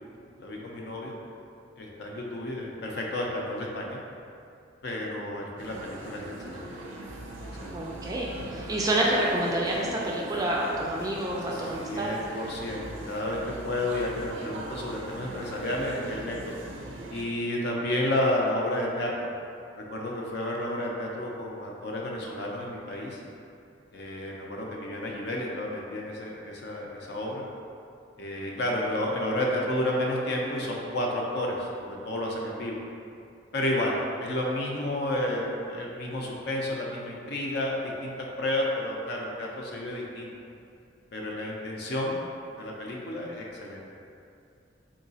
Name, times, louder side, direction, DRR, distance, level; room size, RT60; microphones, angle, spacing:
voice 1, 0.4-1.1 1.8-4.0 4.8-6.7 7.5-7.8 11.5-16.6 17.1-19.1 19.8-23.2 23.9-27.4 28.2-32.8 33.5-40.3 41.1-42.2 42.6-43.8, left 1 dB, 55° left, -2 dB, 0.5 m, -31 dB
sound 1, 5.6-17.2, right 2 dB, 85° right, 0.5 m, -41 dB
voice 2, 7.7-12.2, right 1 dB, 20° right, -3 dB, 0.3 m, -28 dB
3.8 x 2.9 x 2.7 m, 2.5 s
head